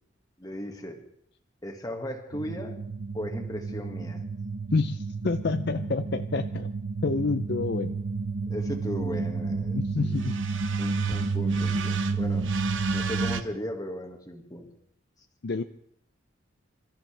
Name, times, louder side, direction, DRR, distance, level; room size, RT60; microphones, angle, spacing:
voice 1, 0.4-1.0 1.6-2.8 3.1-4.3 8.5-10.2 10.8-12.5 12.9-14.7, equal, 20° left, 4 dB, 1.8 m, -36 dB
sound 1, 2.3-13.4, right 4 dB, 70° right, 0.9 m, -30 dB
voice 2, 4.7-6.7 7.0-7.9 9.7-10.4 15.4-15.6, left 4 dB, 55° left, 9 dB, 0.5 m, -28 dB
27.5 x 14.0 x 3.4 m, 0.70 s
head